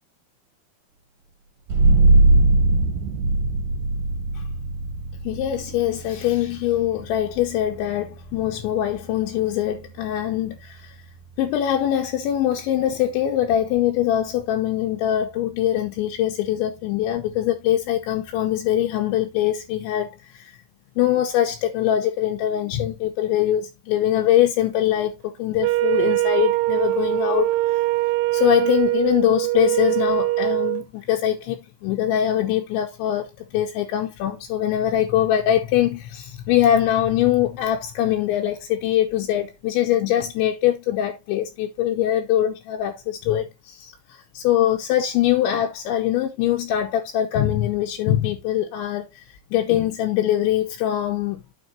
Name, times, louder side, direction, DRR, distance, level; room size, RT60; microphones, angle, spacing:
sound 1, 1.7-12.9, right 2 dB, 65° right, 2.4 m, -23 dB
voice 1, 5.2-11.0 11.4-20.6 21.0-27.8 28.3-49.2 49.5-51.4, left 11 dB, 80° left, 3.1 m, -23 dB
Wind instrument woodwind instrument, 25.6-30.8, right 17 dB, 85° right, 2.9 m, -22 dB
9.4 x 5.5 x 3.1 m
omnidirectional pair, 5.5 m